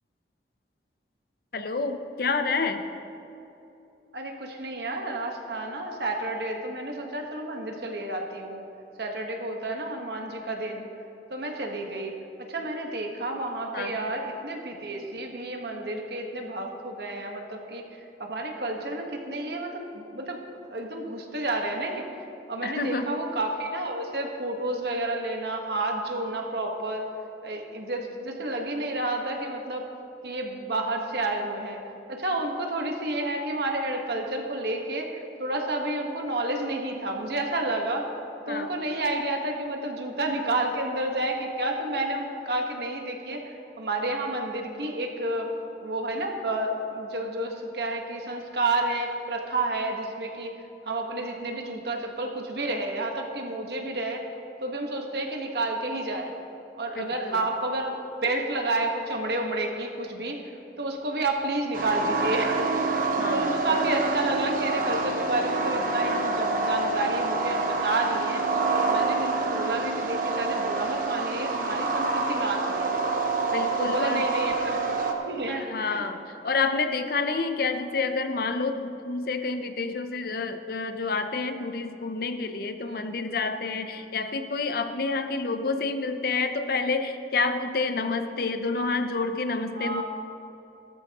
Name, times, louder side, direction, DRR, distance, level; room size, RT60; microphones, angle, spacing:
voice 1, 1.5-2.9 13.7-14.1 22.6-23.2 38.5-38.7 57.0-57.4 63.2-63.7 73.5-74.2 75.5-90.0, left 4 dB, 55° left, 8 dB, 0.6 m, -29 dB
voice 2, 4.1-8.6 9.0-10.8 11.3-12.1 12.4-17.9 18.2-22.0 22.5-27.1 27.4-29.8 30.2-31.8 32.1-35.1 35.4-38.0 38.5-43.4 43.8-45.5 45.8-50.5 50.8-54.2 54.6-56.3 56.8-60.4 60.8-62.7 63.3-68.4 68.8-73.0 73.8-74.8 75.3-76.0 82.9-83.0 89.8-90.0, right 2 dB, 65° right, 2 dB, 1.4 m, -30 dB
sound 1, 61.7-75.1, right 3 dB, 50° right, 1.1 m, -27 dB
16.5 x 13.0 x 3.0 m, 2.9 s
head